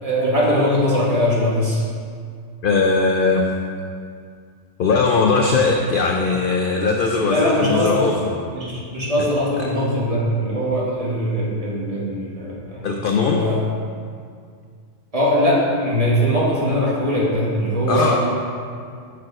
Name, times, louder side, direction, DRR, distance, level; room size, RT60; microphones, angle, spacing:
voice 1, 0.0-1.8 5.3-5.4 7.3-8.0 8.5-12.8 13.1-13.6 15.1-18.2, equal, 30° right, -5 dB, 1.2 m, -21 dB
voice 2, 2.6-3.6 4.8-8.4 9.2-9.3 9.6-9.7 12.8-13.5 17.9-18.2, left 4 dB, 65° left, 1 dB, 0.5 m, -19 dB
6.1 x 4.7 x 4.8 m, 2.2 s
omnidirectional pair, 1.4 m